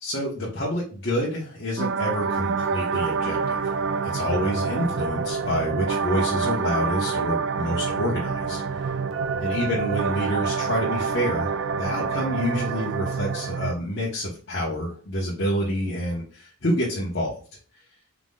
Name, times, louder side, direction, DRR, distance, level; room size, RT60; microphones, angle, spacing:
voice 1, 0.0-3.8 4.0-8.9 9.4-17.4, equal, 55° left, -5 dB, 1.2 m, -28 dB
sound 1, 1.8-13.7, right 5 dB, 55° right, 0.3 m, -27 dB
4.9 x 3.7 x 2.4 m, 0.40 s
head